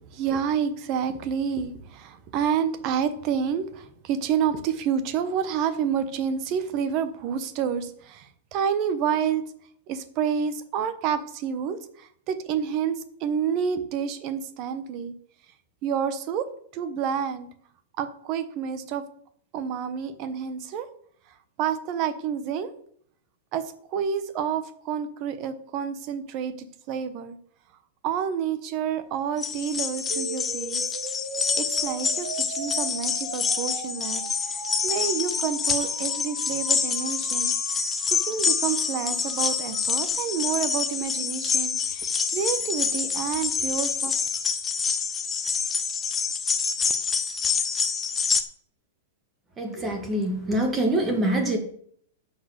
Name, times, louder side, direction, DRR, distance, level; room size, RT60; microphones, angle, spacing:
voice 1, 0.0-9.5 9.9-15.1 15.8-17.5 18.0-19.0 19.5-20.9 21.6-22.7 23.5-27.4 28.0-30.9 31.5-37.8 38.1-44.1, right 7 dB, 30° right, 12 dB, 0.9 m, -29 dB
sound 1, 29.4-48.4, left 6 dB, 10° left, 0.6 m, -27 dB
sound 2, 30.1-40.1, right 3 dB, 80° right, 2.9 m, -40 dB
voice 2, 49.6-51.6, right 1 dB, 10° right, 5 dB, 1.5 m, -25 dB
10.0 x 6.5 x 6.4 m, 0.63 s
supercardioid pair, 175°, 0 cm